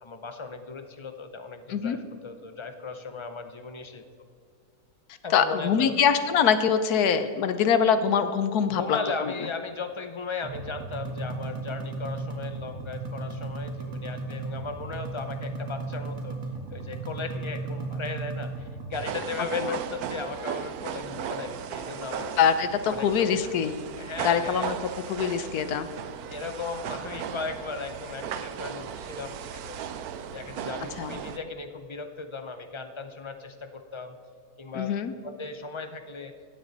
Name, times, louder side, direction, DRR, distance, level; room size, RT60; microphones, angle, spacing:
voice 1, 0.0-2.0 2.2-4.0 5.2-5.9 8.7-16.4 16.7-22.4 22.9-23.5 24.0-24.7 26.3-29.9 30.3-34.2 34.6-34.9 35.2-36.3, left 4 dB, 45° left, 8 dB, 0.3 m, -36 dB
voice 2, 5.3-9.3 19.6-19.7 22.4-23.7 24.2-24.7 25.1-25.9 31.0-31.2 34.7-35.1, left 7 dB, 85° left, 11 dB, 1.3 m, -24 dB
sound 1, 10.4-18.9, right 3 dB, 60° right, 1.9 m, -35 dB
sound 2, 18.9-31.4, right 8 dB, 80° right, 1.2 m, -36 dB
16.5 x 9.6 x 4.0 m, 2.2 s
omnidirectional pair, 1.6 m